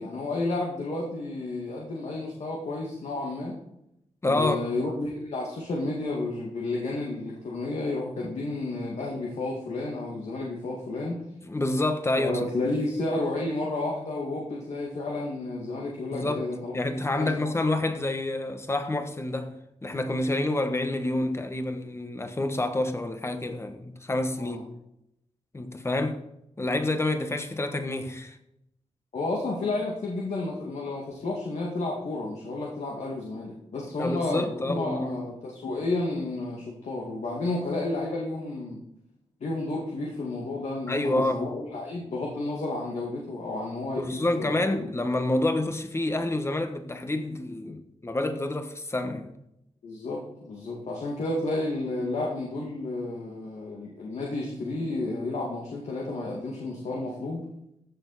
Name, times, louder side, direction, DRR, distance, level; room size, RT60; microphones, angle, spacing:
voice 1, 0.0-3.5 4.2-11.2 12.2-16.7 17.1-17.5 24.4-24.6 29.1-38.8 39.4-44.9 49.8-57.4, left 2 dB, 70° left, 2.1 m, -31 dB
voice 2, 4.2-4.6 8.2-8.3 11.4-12.5 16.1-16.5 16.7-24.7 25.5-26.2 26.6-28.4 34.0-35.2 40.9-41.5 44.0-49.3, left 2 dB, 20° left, 1.2 m, -28 dB
14.5 x 7.1 x 4.1 m
wide cardioid pair, 100°, 12 cm